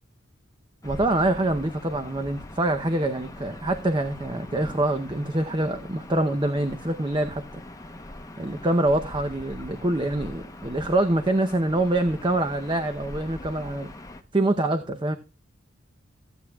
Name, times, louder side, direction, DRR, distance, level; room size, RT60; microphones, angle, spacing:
Gull seagull / Ocean, 0.8-14.2, left 1 dB, 15° left, 0.8 m, -42 dB
voice 1, 0.8-7.6 8.4-13.9 14.3-15.2, right 1 dB, 25° right, 0.7 m, -25 dB
15.5 x 8.6 x 2.3 m
head